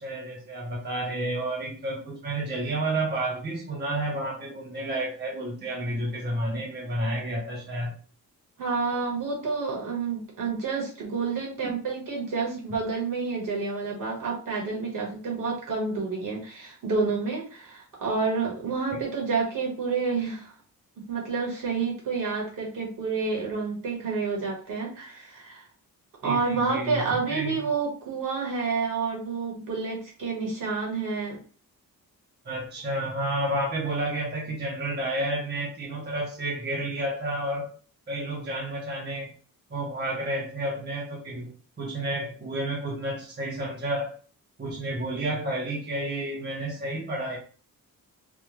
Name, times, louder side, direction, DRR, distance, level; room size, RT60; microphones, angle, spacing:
voice 1, 0.0-8.0 11.6-11.7 18.9-19.0 26.2-27.0 27.3-27.6 32.4-37.7 38.1-39.3 39.7-41.5 41.8-44.1 44.6-47.4, right 1 dB, 30° right, -3 dB, 0.7 m, -30 dB
voice 2, 8.6-20.5 21.0-25.6 26.2-31.4, right 4 dB, 65° right, -1 dB, 1.5 m, -29 dB
3.4 x 2.2 x 3.0 m, 0.40 s
wide cardioid pair, 130°, 35 cm